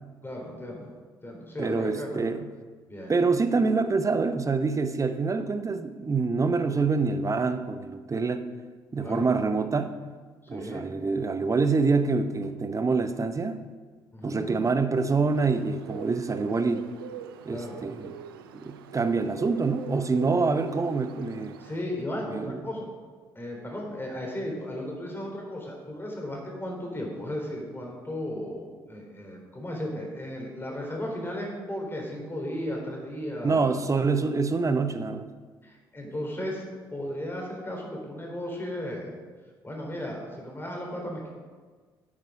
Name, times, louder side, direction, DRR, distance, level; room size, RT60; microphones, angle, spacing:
voice 1, 0.2-0.9 1.2-2.2 2.9-3.1 9.0-9.3 10.5-10.8 14.1-14.6 17.5-17.8 21.6-22.9 23.4-33.7 35.6-36.6 36.9-39.1 39.6-41.3, left 1 dB, 20° left, -1 dB, 3.6 m, -35 dB
voice 2, 1.6-2.5 3.1-8.5 8.9-10.0 10.5-13.6 14.2-16.9 17.4-18.1 18.5-21.6 22.3-22.6 33.4-35.3 36.0-36.1, right 4 dB, 25° right, 10 dB, 0.9 m, -26 dB
Bird, 15.3-21.8, right 8 dB, 80° right, 0.4 m, -44 dB
8.9 x 8.7 x 4.9 m, 1.5 s
figure-of-eight pair, 45°, 12 cm